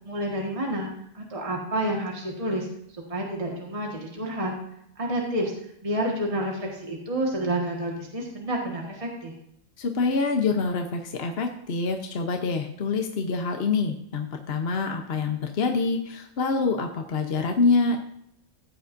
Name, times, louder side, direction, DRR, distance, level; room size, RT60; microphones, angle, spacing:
voice 1, 0.0-0.9 1.1-2.7 3.1-4.5 5.0-5.5 5.8-9.3, right 1 dB, 25° right, -1 dB, 1.7 m, -29 dB
voice 2, 9.8-18.0, left 4 dB, 55° left, 4 dB, 1.1 m, -26 dB
15.0 x 9.2 x 2.6 m, 0.74 s
omnidirectional pair, 1.3 m